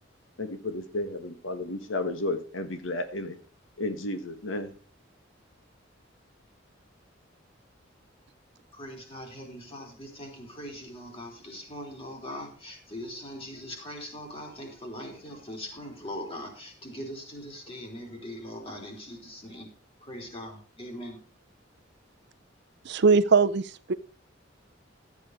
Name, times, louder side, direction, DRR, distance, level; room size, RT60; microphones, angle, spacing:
voice 1, 0.4-3.3 3.8-4.7, left 2 dB, 90° left, 8 dB, 1.5 m, -32 dB
voice 2, 8.7-19.7 20.0-21.2, equal, 30° left, 2 dB, 3.8 m, -41 dB
voice 3, 22.8-23.9, right 4 dB, 60° right, 13 dB, 0.6 m, -21 dB
13.0 x 8.4 x 4.9 m, 0.38 s
head